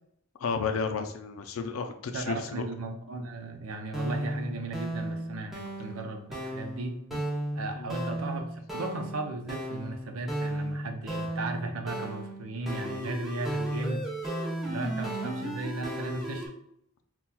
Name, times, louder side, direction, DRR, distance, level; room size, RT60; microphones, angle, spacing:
voice 1, 0.4-2.7 7.8-7.9, left 5 dB, 70° left, 6 dB, 0.4 m, -32 dB
voice 2, 2.1-7.0 7.5-14.0 14.7-16.4, right 2 dB, 80° right, 5 dB, 0.6 m, -36 dB
sound 1, 3.9-16.5, right 1 dB, ahead, 0.7 m, -35 dB
5.6 x 2.3 x 2.2 m, 0.72 s
head